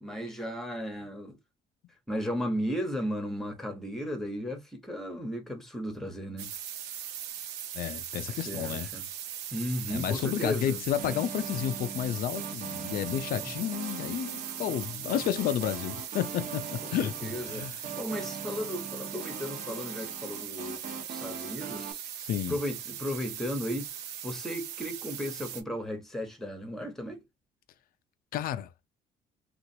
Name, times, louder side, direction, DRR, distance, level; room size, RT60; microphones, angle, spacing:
voice 1, 0.0-1.4 2.1-6.6 8.3-9.1 9.5-10.8 13.4-13.5 14.7-15.2 16.8-17.7 18.0-22.0 22.5-23.9 24.2-27.2, equal, ahead, 1.1 m, -35 dB
sound 1, 6.4-25.6, right 9 dB, 80° right, 0.8 m, -40 dB
voice 2, 7.7-8.9 9.9-17.8 22.2-22.6 28.3-28.7, left 10 dB, 60° left, 0.5 m, -31 dB
sound 2, 11.0-21.9, right 5 dB, 50° right, 1.0 m, -42 dB
3.0 x 2.5 x 2.7 m
cardioid pair, 110°, 17 cm